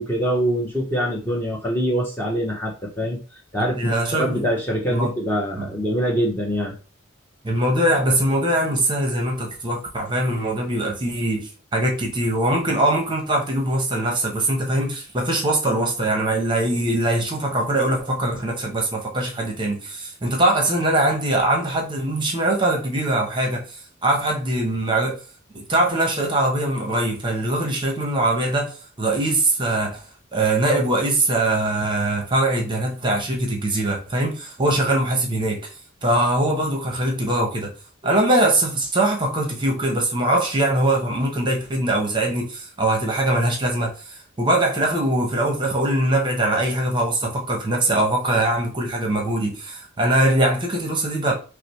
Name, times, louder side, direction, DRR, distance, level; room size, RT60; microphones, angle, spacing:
voice 1, 0.0-3.2 3.5-6.7, equal, 10° left, 0.7 m, -24 dB
voice 2, 3.8-4.4 4.9-5.1 5.6-5.7 7.4-25.2 25.5-30.0 30.3-35.7 36.0-37.7 38.0-51.3, right 1 dB, 25° right, 0.8 m, -22 dB
5.6 x 2.0 x 3.1 m
head